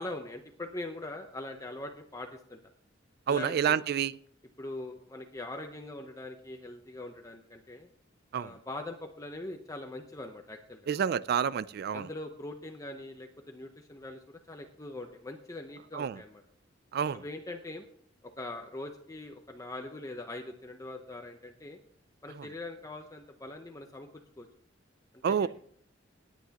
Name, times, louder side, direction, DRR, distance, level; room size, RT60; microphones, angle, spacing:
voice 1, 0.0-2.6 3.3-3.8 4.6-7.9 8.3-10.9 11.9-16.4 17.1-17.8 18.4-21.8 22.2-24.1 24.4-24.5 25.3-25.5, left 2 dB, 15° left, 0.8 m, -42 dB
voice 2, 3.3-4.2 8.3-8.6 10.9-12.1 15.9-16.2 16.9-17.2 22.4-22.5 25.2-25.5, right 7 dB, 55° right, 0.3 m, -29 dB
18.5 x 9.1 x 2.9 m
head